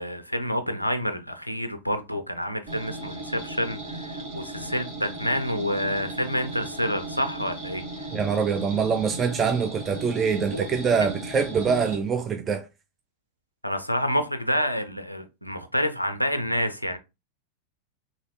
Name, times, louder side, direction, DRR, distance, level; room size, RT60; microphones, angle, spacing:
voice 1, 0.0-8.1 10.5-10.6 13.6-17.0, equal, 90° left, 0.4 m, -28 dB
sound 1, 2.7-12.0, right 2 dB, 50° right, 1.2 m, -36 dB
voice 2, 8.1-12.7, right 6 dB, 25° right, 0.4 m, -24 dB
3.2 x 2.7 x 2.7 m
figure-of-eight pair, 90°, 0 cm